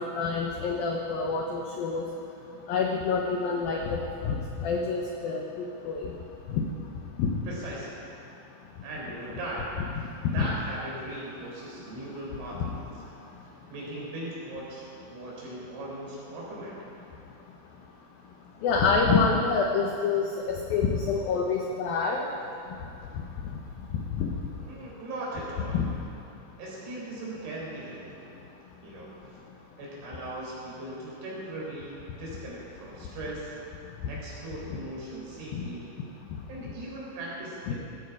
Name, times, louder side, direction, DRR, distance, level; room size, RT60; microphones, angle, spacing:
voice 1, 0.0-2.0 2.7-6.1 6.5-6.7 7.2-7.3 10.4-10.5 12.6-12.7 18.6-22.3 24.2-24.3 25.7-25.9 35.5-35.6 37.7-37.8, left 5 dB, 90° left, 1 dB, 2.0 m, -27 dB
voice 2, 7.5-8.0 8.8-10.1 10.3-12.9 13.7-16.8 24.6-25.9 26.6-28.2 28.8-29.1 29.8-33.5 34.1-35.9 36.5-37.7, right 1 dB, 65° right, -5 dB, 6.4 m, -38 dB
18.5 x 15.5 x 4.8 m, 2.8 s
omnidirectional pair, 5.7 m